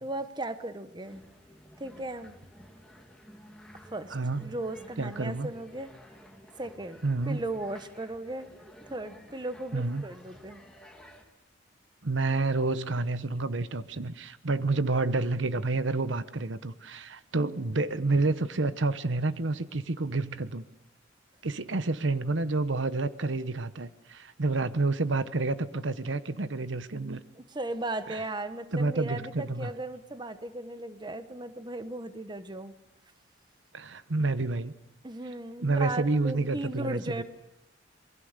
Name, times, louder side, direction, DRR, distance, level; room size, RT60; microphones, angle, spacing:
voice 1, 0.0-1.2 1.8-2.4 3.9-5.9 6.6-8.5 8.9-10.6 27.4-32.7 35.0-37.2, right 2 dB, 25° right, 11 dB, 1.1 m, -36 dB
sound 1, 1.0-11.2, equal, 5° left, 2.6 m, -53 dB
voice 2, 4.1-4.5 5.0-5.5 7.0-7.4 9.7-10.0 12.0-20.6 21.4-27.2 28.1-28.2 28.7-29.7 33.7-34.7 35.6-37.2, right 3 dB, 80° right, 14 dB, 1.0 m, -29 dB
27.5 x 22.0 x 6.7 m, 0.87 s
head